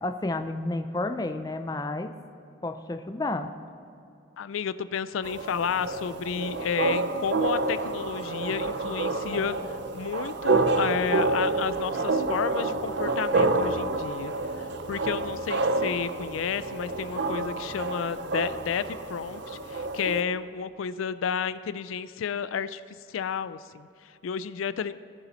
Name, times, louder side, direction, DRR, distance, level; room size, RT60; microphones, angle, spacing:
voice 1, 0.0-2.1 2.6-3.5, left 2 dB, 20° left, 8 dB, 0.4 m, -31 dB
voice 2, 4.4-22.8 23.1-24.9, left 7 dB, 80° left, 15 dB, 0.4 m, -31 dB
sound 1, 5.2-20.2, right 3 dB, 60° right, 0.6 m, -28 dB
19.0 x 7.0 x 4.2 m, 2.7 s
head